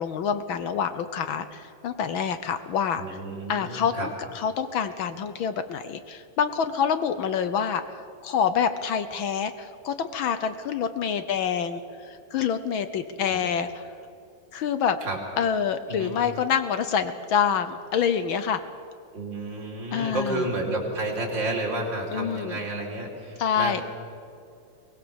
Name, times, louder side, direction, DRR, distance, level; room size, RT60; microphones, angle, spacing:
voice 1, 0.0-3.0 3.5-4.1 4.3-13.9 14.5-15.0 15.4-18.6 19.9-20.4 22.1-22.6 23.4-23.8, left 7 dB, 75° left, 11 dB, 1.1 m, -27 dB
voice 2, 3.0-4.1 13.1-13.4 15.0-15.2 15.9-16.1 19.1-23.8, right 2 dB, 40° right, -1 dB, 4.6 m, -31 dB
23.5 x 20.0 x 7.0 m, 2.5 s
omnidirectional pair, 3.3 m